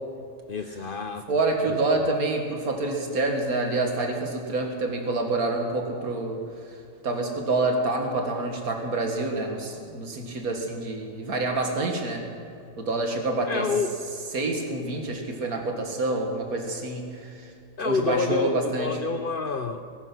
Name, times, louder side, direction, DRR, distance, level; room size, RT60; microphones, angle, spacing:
voice 1, 0.5-1.3 1.6-2.0 13.5-13.9 17.8-19.8, left 4 dB, 50° left, 8 dB, 0.7 m, -28 dB
voice 2, 1.3-6.4 7.0-12.2 12.8-13.7 14.3-17.5 17.8-18.9, right 2 dB, 90° right, 3 dB, 2.3 m, -27 dB
18.5 x 11.0 x 6.1 m, 2.4 s
omnidirectional pair, 1.5 m